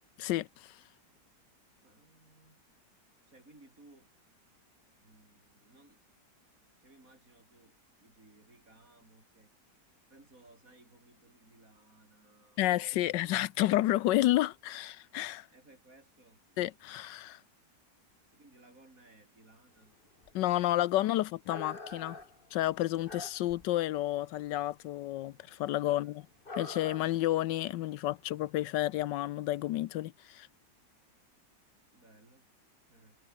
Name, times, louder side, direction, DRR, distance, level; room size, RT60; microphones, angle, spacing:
voice 1, 0.2-0.8 12.6-15.5 16.6-17.4 20.3-22.2 22.5-26.2 26.6-30.5, left 15 dB, 80° left, 1.3 m, -30 dB
voice 2, 1.8-2.6 3.3-4.1 5.0-6.0 6.8-9.5 10.1-12.8 15.5-16.4 18.3-19.9 25.9-26.1 31.9-33.2, right 2 dB, 50° right, 5.8 m, -61 dB
sound 1, 19.9-20.0 20.2-20.8 21.3-23.8 24.0-24.8 25.1-25.2 25.5-25.6 26.4-27.3 27.6-27.7 28.3-28.4, left 3 dB, 30° left, 2.8 m, -46 dB
omnidirectional pair, 1.9 m